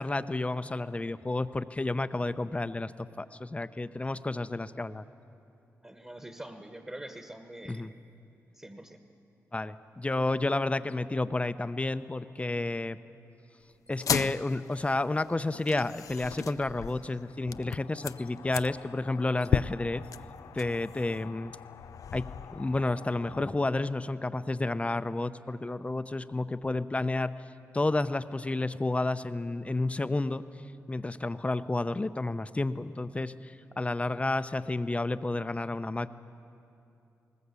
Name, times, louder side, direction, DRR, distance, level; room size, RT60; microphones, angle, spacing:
voice 1, 0.0-2.9 3.2-5.1 7.7-7.9 9.5-13.0 13.9-20.0 20.5-21.5 22.1-22.3 22.5-27.3 27.7-30.4 30.9-36.1, left 2 dB, 20° left, 13 dB, 0.7 m, -31 dB
voice 2, 5.8-7.9 8.5-9.0, right 1 dB, 20° right, 6 dB, 1.4 m, -44 dB
sound 1, 13.9-23.5, left 8 dB, 75° left, 0.4 m, -36 dB
20.0 x 19.5 x 8.3 m, 2.8 s
cardioid pair, 70°, 6 cm